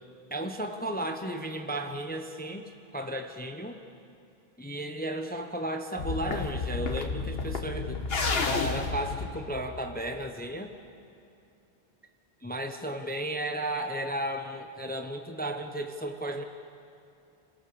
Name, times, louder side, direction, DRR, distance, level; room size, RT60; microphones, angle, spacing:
voice 1, 0.3-3.8 4.6-8.0 8.4-10.7 12.4-16.4, right 1 dB, 10° left, 5 dB, 0.9 m, -34 dB
sound 1, 6.0-10.2, left 4 dB, 75° left, 1.6 m, -31 dB
29.0 x 18.5 x 7.0 m, 2.7 s
omnidirectional pair, 1.0 m